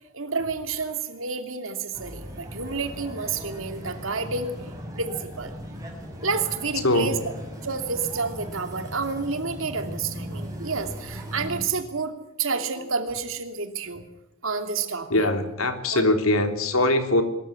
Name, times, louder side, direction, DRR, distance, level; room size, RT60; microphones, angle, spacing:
voice 1, 0.1-4.5 4.9-5.5 6.2-7.2 7.6-14.1 14.4-15.1 15.9-16.1, right 4 dB, 70° right, 7 dB, 2.8 m, -29 dB
sound 1, 1.9-11.6, equal, 15° right, 6.0 m, -38 dB
voice 2, 6.8-7.2 15.1-17.2, left 1 dB, 90° left, 6 dB, 3.5 m, -22 dB
23.5 x 14.0 x 10.0 m, 0.89 s
head